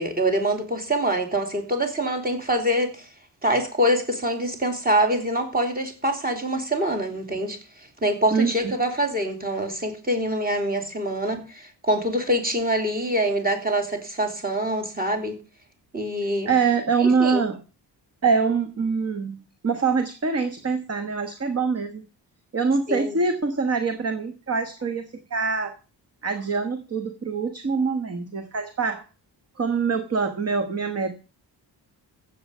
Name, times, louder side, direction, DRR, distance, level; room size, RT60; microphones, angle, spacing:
voice 1, 0.0-3.1 3.4-7.6 8.0-15.4 15.9-16.5 17.0-17.4 22.9-23.1, right 1 dB, 20° right, 3.2 m, -25 dB
voice 2, 8.3-8.7 16.4-17.6 18.2-22.1 22.5-25.7 26.2-29.0 29.6-31.2, right 5 dB, 35° right, 1.3 m, -24 dB
15.0 x 7.7 x 5.5 m
wide cardioid pair, 155°, 41 cm